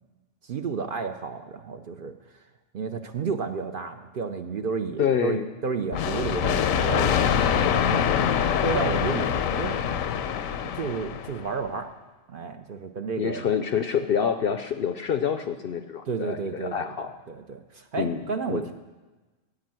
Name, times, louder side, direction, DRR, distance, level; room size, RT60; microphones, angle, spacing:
voice 1, 0.4-2.2 2.7-8.1 8.6-10.0 10.7-11.9 12.3-13.4 16.1-18.7, right 5 dB, 55° right, 6 dB, 0.7 m, -32 dB
voice 2, 5.0-5.5 7.7-7.8 8.1-8.5 13.2-17.1 18.0-18.2 18.5-18.6, left 7 dB, 60° left, 8 dB, 0.6 m, -27 dB
sound 1, 5.9-11.5, left 8 dB, 85° left, 1.1 m, -24 dB
9.9 x 8.6 x 7.6 m, 1.2 s
omnidirectional pair, 1.3 m